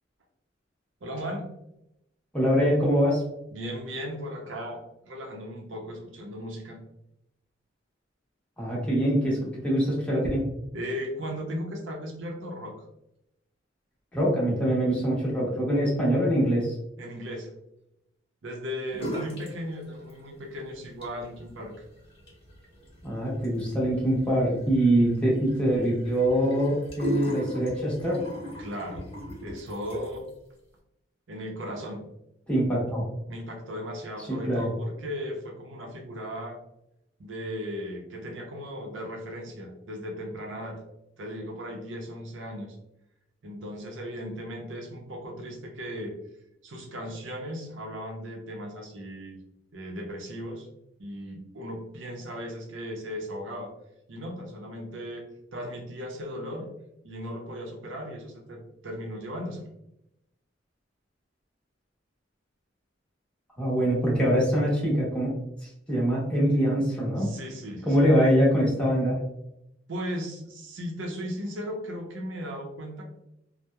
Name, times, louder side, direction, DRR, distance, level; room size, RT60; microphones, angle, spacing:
voice 1, 1.0-1.5 3.5-6.8 10.7-12.9 17.0-17.5 18.4-21.7 28.6-29.1 29.4-30.3 31.3-32.0 33.3-36.6 37.2-40.8 41.2-42.8 43.4-46.1 46.6-49.4 49.7-50.7 51.0-53.7 54.1-56.7 57.0-59.7 67.2-68.1 69.9-73.0, equal, 75° right, 2 dB, 0.6 m, -37 dB
voice 2, 2.3-3.2 8.6-10.5 14.1-16.7 23.0-28.2 32.5-33.0 34.3-34.7 63.6-65.3 65.6-67.3 67.8-69.2, equal, 5° left, -6 dB, 0.9 m, -24 dB
sound 1, 18.9-19.5 19.8-20.5 20.8-30.3, right 1 dB, 30° left, 0.9 m, -38 dB
2.8 x 2.0 x 2.2 m, 0.83 s
head